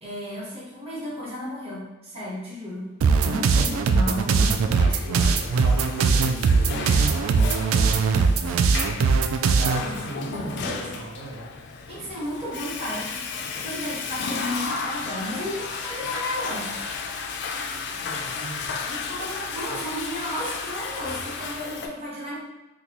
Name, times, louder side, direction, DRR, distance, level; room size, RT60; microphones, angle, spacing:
voice 1, 0.0-2.9 3.2-5.0 7.3-8.0 9.8-10.0 10.3-11.0 11.9-16.7 18.9-22.4, left 1 dB, 30° right, -6 dB, 0.9 m, -33 dB
sound 1, 3.0-9.8, right 5 dB, 90° right, 0.3 m, -20 dB
Water / Toilet flush, 4.4-21.9, left 5 dB, 60° left, 0.3 m, -34 dB
voice 2, 5.3-6.7 8.5-8.6 9.6-11.5 18.0-18.8, right 1 dB, 65° right, -6 dB, 0.9 m, -36 dB
3.8 x 2.2 x 2.9 m, 1.0 s
head